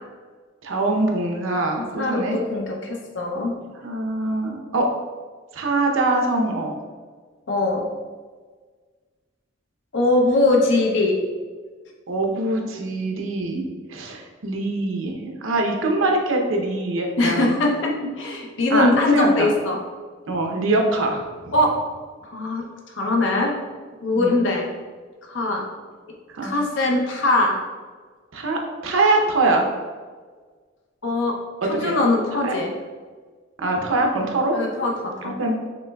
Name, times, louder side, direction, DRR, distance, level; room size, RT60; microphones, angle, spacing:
voice 1, 0.6-2.4 3.8-4.9 5.5-6.8 12.1-13.6 13.9-17.5 18.7-19.5 20.3-21.5 24.1-24.4 26.3-26.6 28.3-29.7 31.8-32.0 32.4-32.5 33.6-34.6 35.2-35.6, right 2 dB, 80° right, 2 dB, 0.7 m, -23 dB
voice 2, 2.0-3.5 7.5-7.9 9.9-11.2 17.2-19.8 21.5-21.8 22.2-23.6 24.0-24.7 25.2-25.7 26.4-27.6 31.0-31.4 31.6-32.7 34.5-35.4, left 2 dB, 70° left, 0 dB, 0.6 m, -21 dB
6.2 x 3.2 x 2.2 m, 1.5 s
head